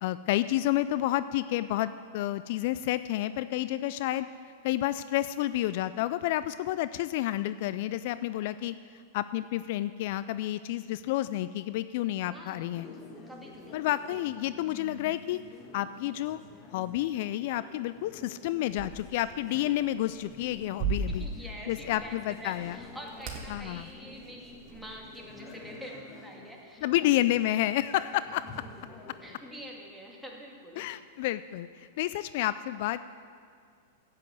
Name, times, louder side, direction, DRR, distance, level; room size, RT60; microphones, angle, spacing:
voice 1, 0.0-4.3 4.6-12.9 13.7-15.4 15.7-16.4 16.7-21.3 21.7-22.8 23.5-23.9 26.8-28.6 30.8-33.1, left 14 dB, 60° left, 14 dB, 0.3 m, -30 dB
voice 2, 12.2-12.9 13.3-13.8 21.1-26.9 27.4-27.6 29.2-30.9, equal, ahead, -2 dB, 2.3 m, -46 dB
sound 1, 12.7-29.4, left 2 dB, 30° left, 1.6 m, -49 dB
sound 2, 18.7-25.8, right 4 dB, 45° right, 2.0 m, -39 dB
10.5 x 8.4 x 8.0 m, 2.2 s
hypercardioid pair, 110°, 0 cm